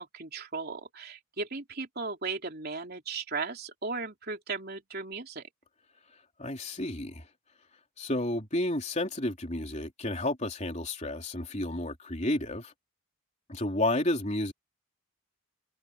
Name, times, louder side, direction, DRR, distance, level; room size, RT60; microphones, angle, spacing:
voice 1, 0.0-5.5, right 4 dB, 45° right, 3.5 m, -36 dB
voice 2, 6.4-7.3 8.0-12.7 13.5-14.5, left 1 dB, 30° left, 3.8 m, -31 dB
head